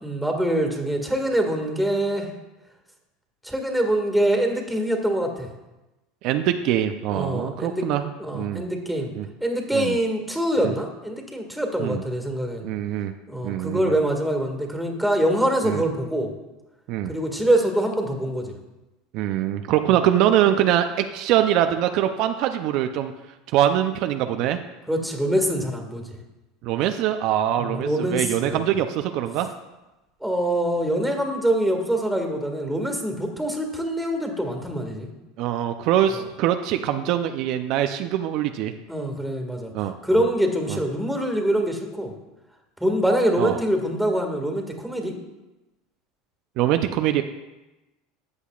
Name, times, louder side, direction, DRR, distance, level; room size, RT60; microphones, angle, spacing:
voice 1, 0.0-2.3 3.4-5.5 7.1-7.9 8.2-9.1 9.4-12.7 13.3-16.3 17.1-18.5 24.9-26.2 27.6-28.7 30.2-35.1 38.9-39.7 40.0-42.1 42.8-45.1, right 1 dB, ahead, 3 dB, 1.9 m, -24 dB
voice 2, 6.2-8.1 8.3-8.6 9.1-9.3 9.7-10.0 10.6-10.7 11.8-12.0 12.6-13.1 13.4-13.9 15.6-15.8 16.9-17.1 19.1-23.1 23.5-24.6 26.6-29.5 35.4-38.7 39.7-40.0 40.7-40.8 43.4-43.6 46.6-47.2, right 11 dB, 60° right, 7 dB, 0.5 m, -23 dB
13.5 x 8.2 x 2.4 m, 1.0 s
hypercardioid pair, 95°, 0 cm